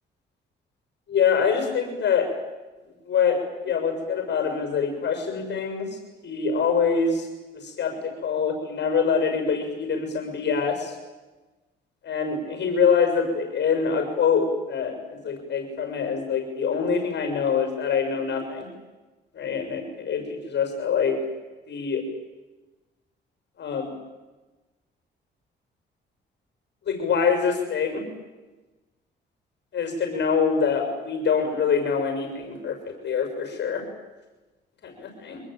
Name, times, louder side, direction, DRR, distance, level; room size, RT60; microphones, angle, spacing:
voice 1, 1.1-2.3 3.1-7.3 7.5-10.9 12.0-18.7 19.3-21.2 21.7-22.0 23.6-23.9 26.9-28.0 29.7-33.8 34.8-35.4, left 6 dB, 60° left, 5 dB, 6.6 m, -25 dB
25.0 x 20.5 x 9.3 m, 1.2 s
cardioid pair, 90°, 20 cm